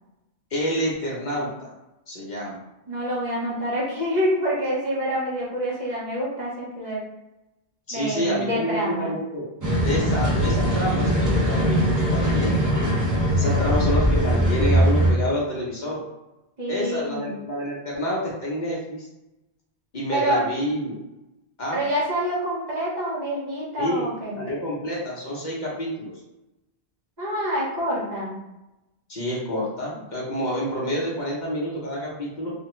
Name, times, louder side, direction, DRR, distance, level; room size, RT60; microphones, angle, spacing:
voice 1, 0.5-1.7 2.1-2.6 7.9-9.5 9.8-12.6 13.3-16.0 16.7-19.1 19.9-21.0 21.6-21.8 23.8-24.1 24.3-26.1 29.1-32.5, equal, 50° left, -5 dB, 0.8 m, -28 dB
voice 2, 2.9-7.0 7.9-9.1 16.6-17.3 20.1-20.5 21.7-24.4 27.2-28.4, equal, 45° right, -7 dB, 1.1 m, -27 dB
sound 1, 9.6-15.1, equal, 25° right, 0.5 m, -21 dB
3.2 x 2.2 x 3.0 m, 0.97 s
omnidirectional pair, 1.0 m